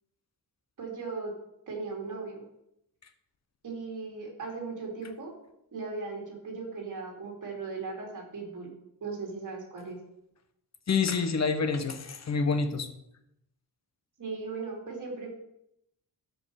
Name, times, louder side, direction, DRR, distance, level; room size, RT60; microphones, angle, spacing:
voice 1, 0.8-1.4 1.7-2.4 3.6-5.3 5.7-8.7 9.0-10.0 14.2-15.3, right 4 dB, 50° right, 0 dB, 3.0 m, -37 dB
voice 2, 10.9-12.9, left 5 dB, 45° left, 8 dB, 1.1 m, -27 dB
12.5 x 5.1 x 4.9 m, 0.81 s
wide cardioid pair, 145°, 39 cm